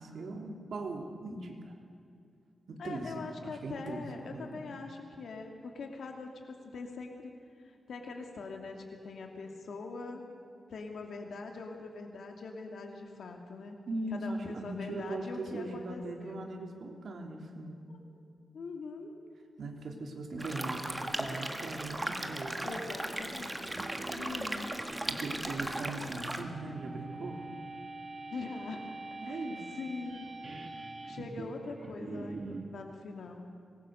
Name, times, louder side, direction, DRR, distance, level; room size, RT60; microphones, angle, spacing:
voice 1, 0.0-1.8 2.7-4.7 13.9-17.8 19.6-22.7 25.0-27.4 29.2-29.7, right 2 dB, 70° right, 2 dB, 3.3 m, -40 dB
voice 2, 2.8-7.3 7.6-10.2 10.7-13.8 14.1-16.5 18.5-19.1 22.6-24.8 28.3-28.9 29.2-29.5 29.8-30.7 31.0-33.5, left 3 dB, 85° left, 3 dB, 2.7 m, -43 dB
sound 1, 20.4-26.4, right 1 dB, 15° right, 1.7 m, -37 dB
sound 2, 23.6-32.7, right 3 dB, 35° right, 1.7 m, -44 dB
25.0 x 20.5 x 6.7 m, 2.4 s
wide cardioid pair, 135°, 0 cm